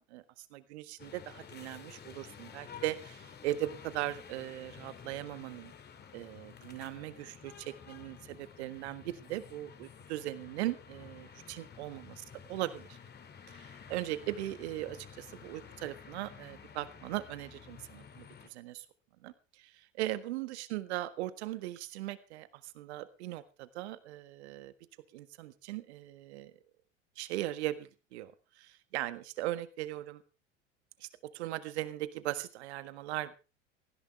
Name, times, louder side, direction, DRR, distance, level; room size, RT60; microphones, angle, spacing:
voice 1, 0.0-5.7 6.1-12.1 12.5-12.9 13.5-18.8 19.2-24.7 25.1-26.5 27.2-28.3 28.6-30.2 31.0-31.1 31.3-33.4, right 15 dB, 60° right, 13 dB, 1.7 m, -39 dB
sound 1, 1.0-18.5, left 7 dB, 25° left, 2.4 m, -52 dB
18.0 x 16.0 x 3.4 m, 0.32 s
figure-of-eight pair, 80°, 37 cm